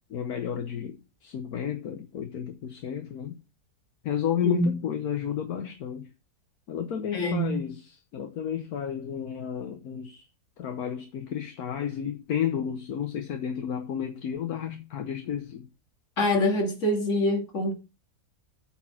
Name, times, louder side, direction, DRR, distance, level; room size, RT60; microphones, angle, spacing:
voice 1, 0.1-3.4 4.0-6.1 6.7-10.3 10.6-15.7, left 8 dB, 70° left, 1.4 m, -32 dB
voice 2, 7.1-7.6 16.2-17.7, left 1 dB, 50° left, 2.2 m, -25 dB
8.7 x 4.3 x 5.8 m
omnidirectional pair, 1.7 m